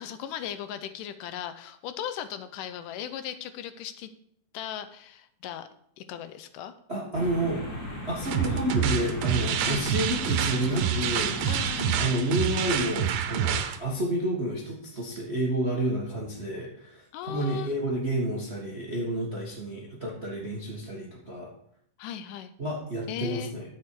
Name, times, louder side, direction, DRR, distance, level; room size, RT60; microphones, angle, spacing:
voice 1, 0.0-4.1 4.5-5.7 6.0-6.7 9.6-9.9 11.4-12.0 17.1-17.7 22.0-22.5 23.1-23.5, left 10 dB, 80° left, 11 dB, 2.2 m, -37 dB
voice 2, 6.9-7.6 8.1-11.4 12.0-21.5 22.6-23.6, right 1 dB, 40° right, -3 dB, 0.9 m, -30 dB
sound 1, 7.1-12.1, left 1 dB, 30° left, 2.6 m, -37 dB
sound 2, 8.2-13.8, right 8 dB, 90° right, 2.6 m, -27 dB
11.0 x 7.3 x 4.6 m, 0.68 s
omnidirectional pair, 3.9 m